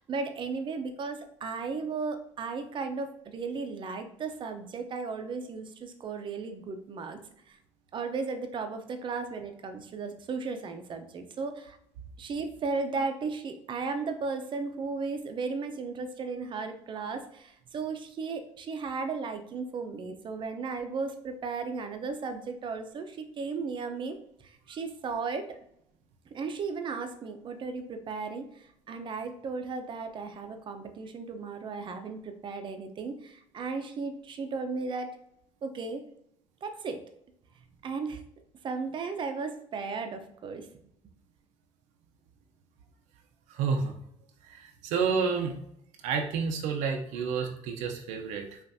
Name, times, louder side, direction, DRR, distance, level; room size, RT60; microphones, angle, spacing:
voice 1, 0.0-7.2 7.5-7.6 7.9-11.8 12.2-24.2 24.4-25.5 26.3-35.2 35.6-36.0 36.6-37.0 37.8-38.2 38.6-40.7, right 4 dB, 40° right, 7 dB, 0.6 m, -35 dB
voice 2, 43.5-43.9 44.5-45.5 46.0-48.6, right 5 dB, 85° right, 3 dB, 0.6 m, -30 dB
5.5 x 2.5 x 2.7 m, 0.73 s
cardioid pair, 105°, 12 cm